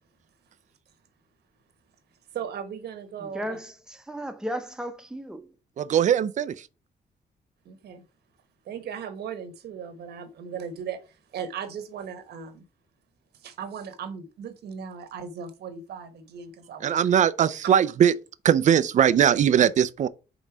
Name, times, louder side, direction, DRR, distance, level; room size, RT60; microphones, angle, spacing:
voice 1, 2.3-3.6 7.6-8.0 8.6-11.0 11.3-12.6 13.4-17.0 17.6-17.7, right 7 dB, 85° right, 1.3 m, -37 dB
voice 2, 3.2-5.5, equal, 5° right, 0.8 m, -35 dB
voice 3, 5.8-6.5 16.8-18.1 18.4-20.1, right 9 dB, 50° right, 0.4 m, -20 dB
5.4 x 3.9 x 6.0 m
wide cardioid pair, 155°, 16 cm